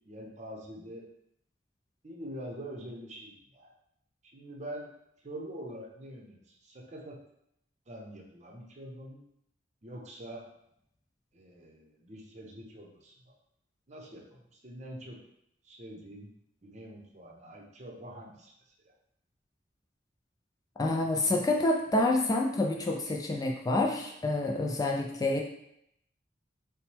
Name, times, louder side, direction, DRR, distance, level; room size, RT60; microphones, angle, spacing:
voice 1, 0.0-1.1 2.0-3.7 4.2-4.9 5.2-7.2 7.9-9.2 9.8-10.5 11.3-13.3 13.9-15.2 15.6-16.3 16.6-18.5, right 1 dB, 40° right, -1 dB, 0.8 m, -45 dB
voice 2, 20.8-25.4, left 2 dB, 20° left, 1 dB, 0.3 m, -28 dB
5.5 x 2.1 x 3.4 m, 0.76 s
head